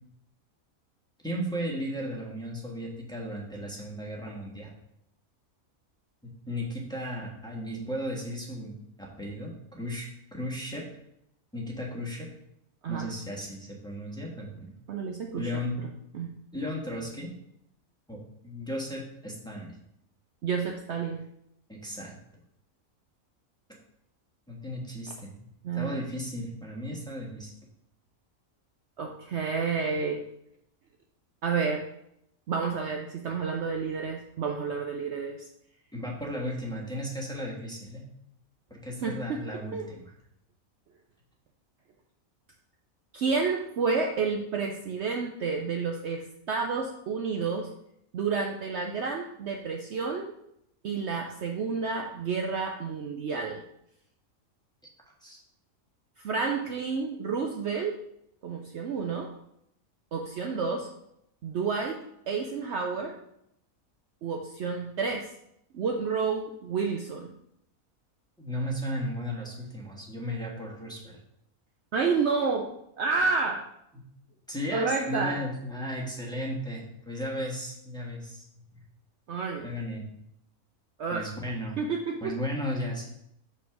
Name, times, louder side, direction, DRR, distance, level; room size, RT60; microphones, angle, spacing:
voice 1, 1.2-4.7 6.5-10.1 10.3-10.8 11.5-12.3 12.9-14.8 15.3-15.8 16.5-17.3 18.1-19.8 21.7-22.2 24.5-25.3 25.7-27.5 35.9-38.0 38.7-40.1 55.2-55.4 68.4-71.2 73.9-74.0 74.5-78.4 79.6-80.0 81.1-81.7 82.2-83.1, equal, 5° left, -3 dB, 1.3 m, -35 dB
voice 2, 14.9-15.5 16.1-16.3 20.4-21.2 25.6-26.0 29.0-30.2 31.4-31.9 32.5-35.5 39.0-39.4 39.7-39.9 43.1-47.7 48.1-50.3 50.8-53.6 56.2-58.0 58.4-59.3 60.1-60.9 61.4-62.0 62.3-63.2 64.2-65.3 65.7-67.3 71.9-73.6 74.7-75.4 79.3-79.7 81.0-81.3 81.8-82.3, right 5 dB, 60° right, 3 dB, 0.8 m, -30 dB
5.7 x 4.4 x 5.9 m, 0.77 s
omnidirectional pair, 1.5 m